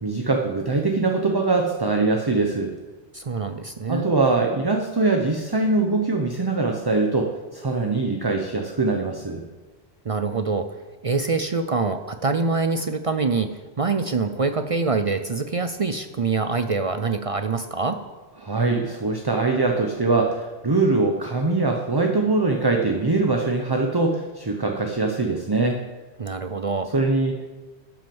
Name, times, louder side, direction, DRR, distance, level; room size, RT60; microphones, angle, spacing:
voice 1, 0.0-2.7 3.9-9.4 18.4-25.8 26.9-27.5, right 3 dB, 25° right, 2 dB, 0.8 m, -22 dB
voice 2, 3.1-4.1 10.1-10.7 11.0-18.0 26.2-26.9, right 4 dB, 45° right, 8 dB, 0.4 m, -25 dB
12.0 x 6.3 x 7.1 m, 1.2 s
omnidirectional pair, 1.2 m